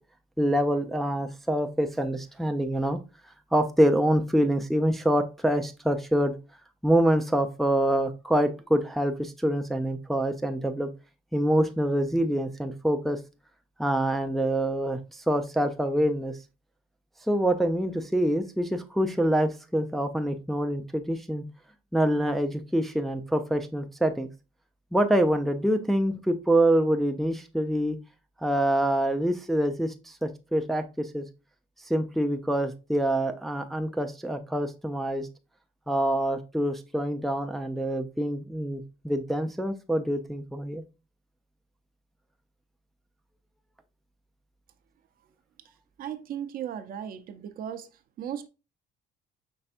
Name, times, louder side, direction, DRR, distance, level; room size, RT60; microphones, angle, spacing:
voice 1, 0.4-3.0 3.5-6.3 6.8-10.9 11.3-13.2 13.8-16.3 17.3-21.4 21.9-24.3 24.9-28.0 28.4-31.3 31.9-35.3 35.9-40.8, right 1 dB, ahead, 5 dB, 0.4 m, -26 dB
voice 2, 46.0-47.9 48.2-48.5, right 9 dB, 60° right, 10 dB, 0.6 m, -36 dB
5.4 x 3.3 x 2.5 m, 0.29 s
cardioid pair, 110°, 17 cm